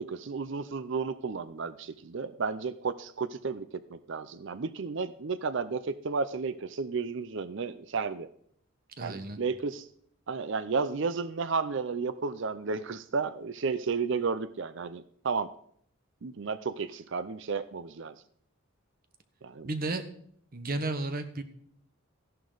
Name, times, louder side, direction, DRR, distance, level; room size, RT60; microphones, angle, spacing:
voice 1, 0.0-8.3 9.0-9.9 10.3-15.5 16.2-18.1 19.4-19.7, right 4 dB, 60° right, 14 dB, 0.5 m, -33 dB
voice 2, 9.0-9.4 19.6-20.0 20.5-21.4, right 2 dB, 45° right, 9 dB, 1.2 m, -33 dB
15.0 x 11.0 x 4.0 m, 0.65 s
head